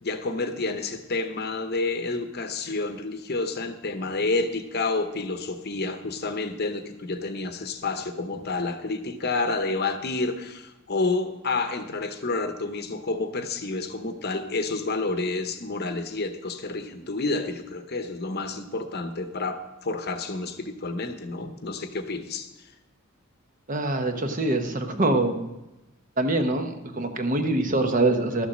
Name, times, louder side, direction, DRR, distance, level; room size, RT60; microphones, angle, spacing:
voice 1, 0.0-22.5, left 3 dB, 50° left, 8 dB, 0.9 m, -29 dB
voice 2, 23.7-25.4 26.2-28.5, right 2 dB, 40° right, 6 dB, 1.1 m, -24 dB
12.5 x 7.2 x 6.2 m, 0.99 s
head